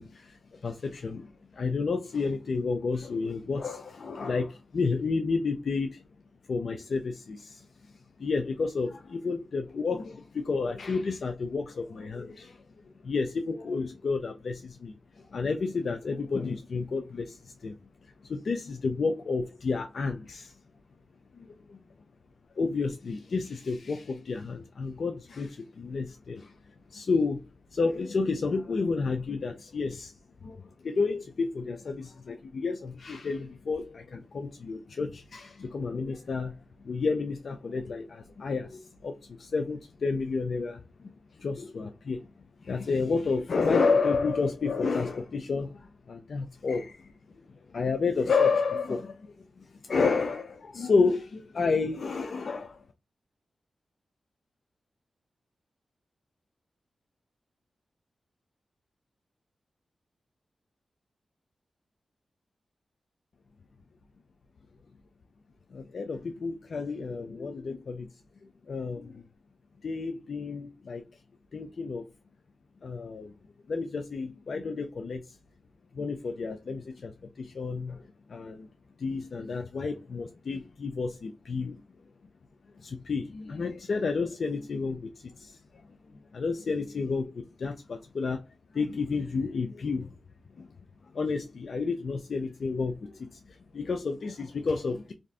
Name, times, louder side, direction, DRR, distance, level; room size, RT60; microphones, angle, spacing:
voice 1, 0.0-6.0 6.5-7.7 8.2-12.6 13.0-17.7 18.2-20.5 21.4-21.8 22.6-26.5 26.9-27.4 27.7-30.1 30.4-36.6 36.8-41.1 41.4-42.2 42.6-47.1 47.7-52.8 65.7-68.1 68.7-69.2 69.8-71.0 71.5-72.0 72.8-73.3 73.7-75.3 75.9-78.0 78.3-78.7 79.0-81.7 82.8-85.6 86.3-88.4 88.7-90.1 90.6-90.7 91.1-95.1, left 4 dB, 70° left, 0.4 m, -31 dB
2.5 x 2.4 x 3.3 m
cardioid pair, 50°, 0 cm